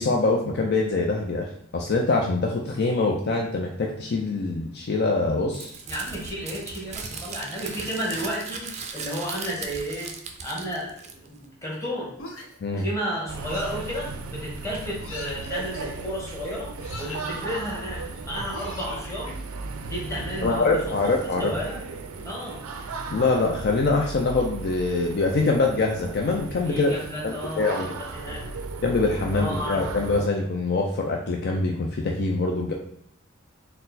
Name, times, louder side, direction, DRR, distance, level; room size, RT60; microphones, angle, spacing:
voice 1, 0.0-1.5 1.7-5.7 12.6-12.8 20.4-21.5 23.1-27.0 27.2-27.9 28.8-32.7, left 3 dB, 50° left, 1 dB, 0.4 m, -24 dB
Crumpling crinkling, 5.5-11.4, right 5 dB, 35° right, 0.4 m, -37 dB
voice 2, 5.9-10.1 10.4-12.1 12.7-19.3 19.8-20.8 21.4-21.8 22.2-22.6 26.7-28.4 29.3-29.8, equal, 15° left, -4 dB, 1.3 m, -32 dB
sound 1, 12.2-12.7 13.5-13.9 15.0-15.5 16.8-17.4 18.5-19.3, left 2 dB, 80° left, 0.9 m, -40 dB
sound 2, 13.3-30.3, right 3 dB, 90° right, 0.5 m, -36 dB
4.2 x 2.1 x 4.0 m, 0.71 s
head